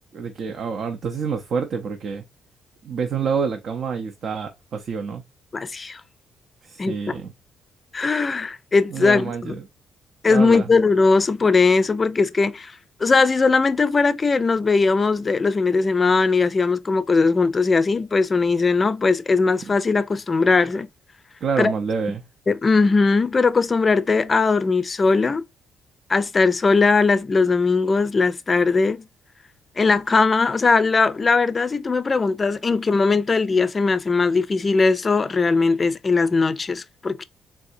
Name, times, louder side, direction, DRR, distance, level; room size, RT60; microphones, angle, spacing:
voice 1, 0.1-2.2 2.8-5.2 6.6-7.3 8.9-9.6 10.2-10.7 21.4-22.2, right 5 dB, 60° right, 0.5 m, -27 dB
voice 2, 5.5-6.0 6.8-7.2 7.9-9.5 10.2-20.9 21.6-21.7 22.5-25.4 26.1-29.1 29.8-37.2, left 4 dB, 30° left, 0.4 m, -19 dB
3.4 x 2.7 x 2.5 m
cardioid pair, 90°, 0 cm